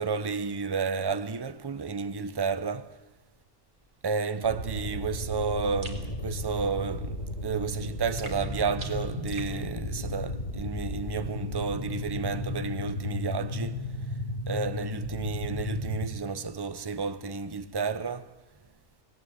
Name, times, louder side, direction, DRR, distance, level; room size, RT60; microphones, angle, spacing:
voice 1, 0.0-3.0 4.0-14.0 14.5-18.3, right 5 dB, 20° right, 0.7 m, -31 dB
sound 1, 4.4-16.1, left 1 dB, 30° left, 3.0 m, -34 dB
sound 2, 5.8-6.1 8.2-9.5, right 2 dB, 45° right, 3.2 m, -43 dB
28.0 x 18.5 x 8.1 m
omnidirectional pair, 1.6 m